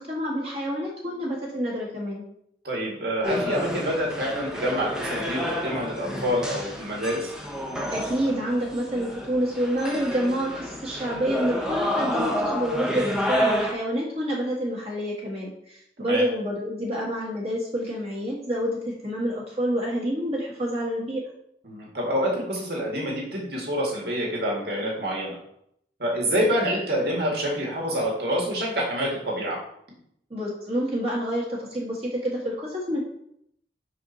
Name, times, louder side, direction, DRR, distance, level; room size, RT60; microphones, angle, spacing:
voice 1, 0.0-2.2 7.9-21.2 30.3-33.0, equal, 35° right, -4 dB, 1.6 m, -28 dB
voice 2, 2.6-7.3 16.0-16.2 21.6-25.4 26.0-29.6, equal, 60° right, -3 dB, 2.1 m, -27 dB
sound 1, 3.2-13.7, equal, 5° right, 0.8 m, -30 dB
6.0 x 4.9 x 4.0 m, 0.73 s
head